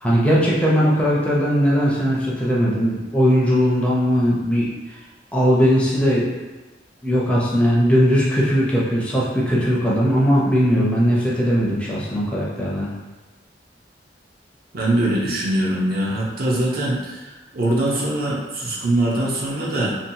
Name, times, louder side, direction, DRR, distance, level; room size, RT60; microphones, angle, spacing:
voice 1, 0.0-4.7 5.3-6.3 7.0-12.9, equal, 5° left, -6 dB, 0.4 m, -19 dB
voice 2, 14.7-17.2 17.5-19.9, right 1 dB, 55° right, -4 dB, 0.6 m, -22 dB
2.7 x 2.2 x 2.7 m, 1.2 s
head